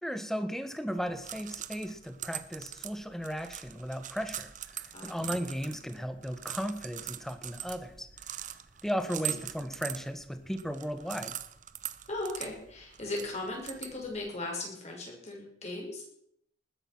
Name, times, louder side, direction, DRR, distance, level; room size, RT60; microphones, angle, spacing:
voice 1, 0.0-8.1 8.4-8.5 8.8-11.4, equal, ahead, 10 dB, 1.3 m, -36 dB
sound 1, 1.0-14.3, right 11 dB, 45° right, 0.8 m, -42 dB
voice 2, 12.1-16.0, left 2 dB, 40° left, -1 dB, 6.4 m, -37 dB
20.0 x 10.0 x 6.2 m, 0.72 s
head